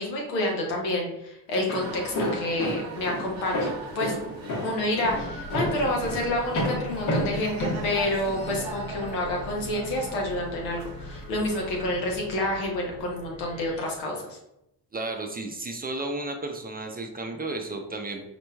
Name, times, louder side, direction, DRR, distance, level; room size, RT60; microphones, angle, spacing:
voice 1, 0.0-4.2 4.6-14.4, left 1 dB, 90° left, -1 dB, 0.9 m, -29 dB
Walk footsteps, 1.5-8.6, left 1 dB, 70° left, 1.3 m, -30 dB
sound 1, 1.8-11.8, right 4 dB, 70° right, 0.8 m, -42 dB
sound 2, 5.0-13.8, left 1 dB, 15° left, 0.9 m, -41 dB
voice 2, 14.9-18.2, right 2 dB, 20° right, 4 dB, 0.5 m, -33 dB
4.2 x 3.0 x 2.2 m, 0.85 s
hypercardioid pair, 55°, 49 cm